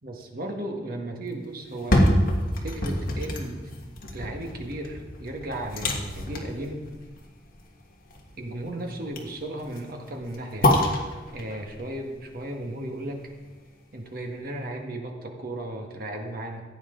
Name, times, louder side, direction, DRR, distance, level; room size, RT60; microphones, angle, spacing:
voice 1, 0.0-2.0 2.6-3.7 4.1-6.8 8.4-10.8 11.3-13.3 13.9-16.6, right 1 dB, 55° right, 2 dB, 1.7 m, -35 dB
sound 1, 1.6-13.7 14.1-14.2, left 1 dB, 55° left, 1.6 m, -28 dB
15.5 x 9.2 x 3.9 m, 1.3 s
head